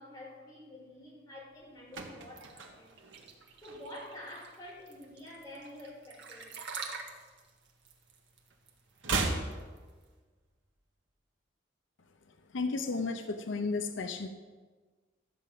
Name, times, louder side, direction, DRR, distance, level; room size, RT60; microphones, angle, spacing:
voice 1, 0.0-3.0 3.6-6.5, left 1 dB, 20° left, -5 dB, 4.8 m, -48 dB
sound 1, 1.5-4.2 4.5-4.8 5.1-6.5 6.8-8.2 8.4-10.5 10.8-10.9, right 3 dB, 90° right, 1.7 m, -38 dB
sound 2, 2.4-10.0, right 5 dB, 70° right, 1.7 m, -46 dB
voice 2, 12.5-14.3, left 3 dB, 90° left, 7 dB, 0.7 m, -33 dB
13.5 x 5.9 x 7.8 m, 1.4 s
head